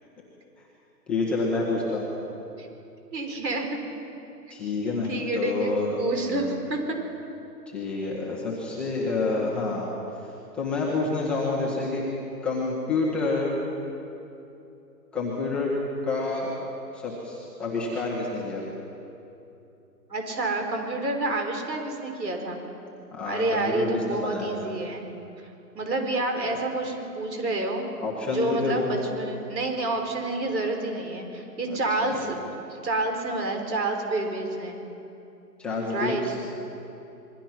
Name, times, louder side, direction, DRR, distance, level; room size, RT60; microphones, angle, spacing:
voice 1, 1.1-2.1 4.5-6.0 6.3-6.6 7.7-9.9 10.5-12.0 12.4-13.5 15.1-15.7 16.0-16.5 16.9-18.7 23.1-24.5 28.0-29.0 32.0-32.1 35.6-36.3, left 3 dB, ahead, -7 dB, 1.2 m, -28 dB
voice 2, 3.1-3.8 5.1-6.8 20.1-22.6 23.3-25.1 25.4-25.5 25.7-27.9 28.2-34.8 35.9-36.2, right 2 dB, 85° right, 3 dB, 5.9 m, -29 dB
26.5 x 22.0 x 5.9 m, 2.8 s
hypercardioid pair, 165°, 49 cm